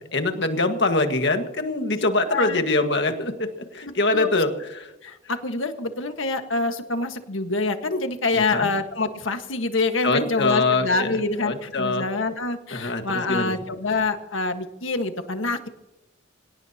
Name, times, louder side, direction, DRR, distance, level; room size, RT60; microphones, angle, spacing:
voice 1, 0.1-4.9 8.3-8.7 10.0-12.0 12.7-13.0 13.3-13.5, left 2 dB, 60° left, 6 dB, 1.7 m, -24 dB
voice 2, 4.1-4.4 5.0-15.7, left 3 dB, 85° left, 7 dB, 1.6 m, -26 dB
25.0 x 17.5 x 2.9 m, 0.97 s
head